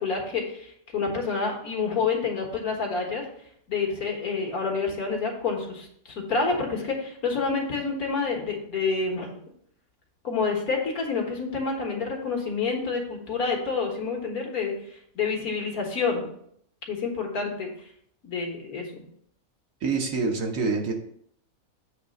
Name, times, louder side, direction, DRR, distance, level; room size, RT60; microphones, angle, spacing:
voice 1, 0.0-3.3 3.7-9.4 10.2-16.3 16.9-17.7 18.2-19.1, left 4 dB, 80° left, 1 dB, 1.9 m, -28 dB
voice 2, 19.8-20.9, right 4 dB, 65° right, 3 dB, 1.4 m, -26 dB
8.2 x 3.3 x 5.2 m, 0.68 s
omnidirectional pair, 1.5 m